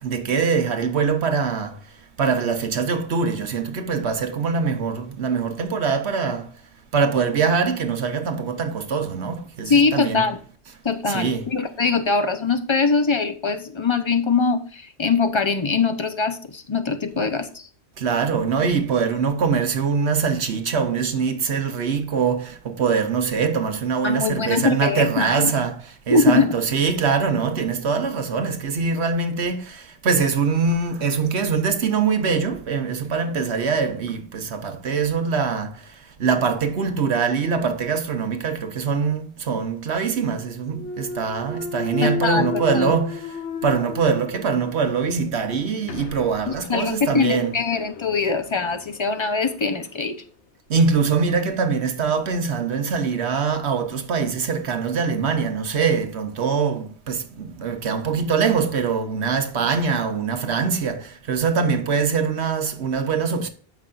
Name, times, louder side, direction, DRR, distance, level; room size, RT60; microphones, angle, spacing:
voice 1, 0.0-1.8 2.2-6.5 6.9-10.3 11.1-11.4 17.2-17.3 18.0-47.6 50.7-63.5, right 5 dB, 70° right, 1.1 m, -23 dB
voice 2, 9.7-10.4 10.8-17.7 24.0-25.5 26.1-26.5 42.0-42.9 46.5-50.2, left 4 dB, 30° left, 0.7 m, -22 dB
Thump thud, 40.7-44.7 45.2-49.9, left 5 dB, 75° left, 1.2 m, -34 dB
13.0 x 5.4 x 2.5 m
omnidirectional pair, 1.2 m